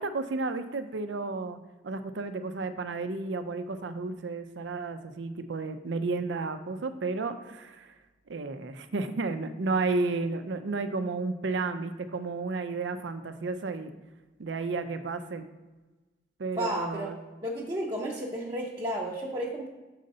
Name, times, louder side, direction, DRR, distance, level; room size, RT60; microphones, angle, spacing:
voice 1, 0.0-1.6 1.8-7.9 8.3-13.9 14.4-15.5 16.4-17.2, right 3 dB, 80° right, 10 dB, 0.5 m, -32 dB
voice 2, 16.6-17.1 17.4-19.7, right 1 dB, 25° right, -4 dB, 0.7 m, -32 dB
6.4 x 3.9 x 5.3 m, 1.2 s
head